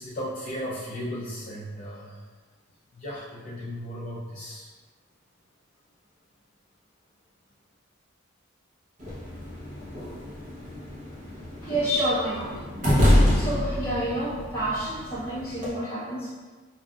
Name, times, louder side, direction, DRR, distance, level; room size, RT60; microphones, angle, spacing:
voice 1, 0.0-2.2 2.9-4.7, equal, 35° left, -8 dB, 0.4 m, -36 dB
sound 1, 9.0-15.7, left 1 dB, 35° right, 0.8 m, -26 dB
voice 2, 11.6-12.6 13.3-16.5, right 1 dB, 10° left, -11 dB, 1.2 m, -29 dB
5.3 x 2.5 x 2.3 m, 1.4 s
head